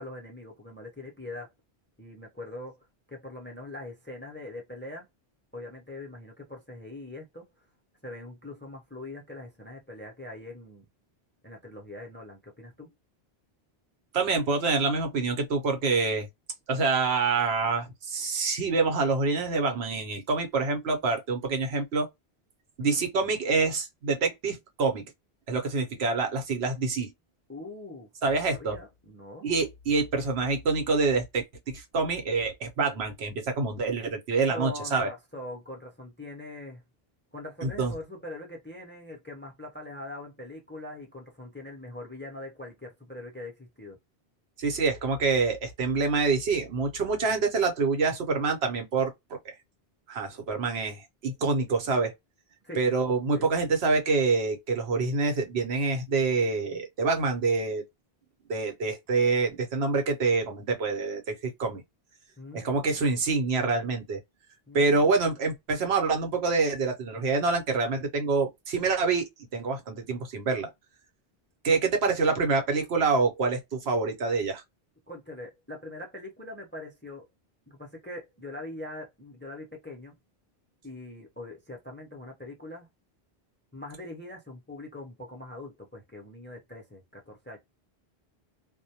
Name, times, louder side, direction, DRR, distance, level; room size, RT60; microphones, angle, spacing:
voice 1, 0.0-1.5 2.0-2.8 3.1-5.1 5.5-7.6 8.0-10.8 11.4-12.9 22.8-23.0 27.5-29.5 34.5-36.8 37.3-44.0 52.6-52.8 53.3-53.5 62.4-63.2 64.7-65.1 75.1-77.3 77.7-80.2 80.8-82.9 83.7-87.6, left 2 dB, 15° left, 0.4 m, -42 dB
voice 2, 14.1-16.3 16.7-22.1 22.8-25.0 25.5-27.1 28.2-28.7 29.4-35.1 37.6-37.9 44.6-49.1 49.4-49.5 50.1-52.1 52.8-57.8 58.5-61.8 62.5-64.2 64.7-70.7 71.6-74.6, right 4 dB, 85° right, 1.0 m, -26 dB
2.2 x 2.1 x 2.7 m
omnidirectional pair, 1.0 m